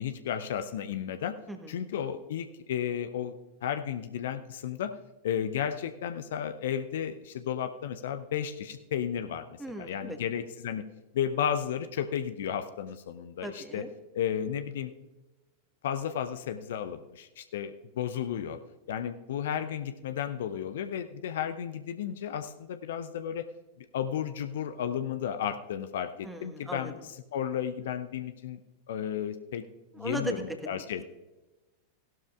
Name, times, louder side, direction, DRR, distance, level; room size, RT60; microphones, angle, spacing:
voice 1, 0.0-1.3 1.7-3.3 3.6-4.9 5.2-9.4 9.8-10.8 11.1-13.9 14.1-14.9 15.8-18.6 18.9-23.5 23.9-27.0 27.3-28.6 28.9-29.6 30.0-31.0, left 9 dB, 60° left, 10 dB, 0.5 m, -33 dB
voice 2, 9.6-10.2 13.4-13.9 26.2-26.9 29.9-30.6, right 1 dB, 5° right, 5 dB, 1.4 m, -37 dB
17.0 x 12.0 x 2.4 m, 1.1 s
figure-of-eight pair, 90°, 0 cm